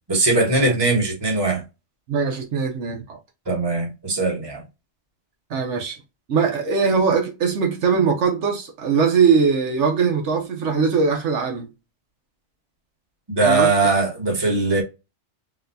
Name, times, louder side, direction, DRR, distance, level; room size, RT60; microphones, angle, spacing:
voice 1, 0.1-1.6 3.5-4.6 13.3-14.8, right 3 dB, 20° right, 1.0 m, -20 dB
voice 2, 2.1-3.2 5.5-6.0 6.3-11.7 13.4-13.7, right 5 dB, 75° right, 1.1 m, -21 dB
4.1 x 2.3 x 2.6 m
omnidirectional pair, 1.2 m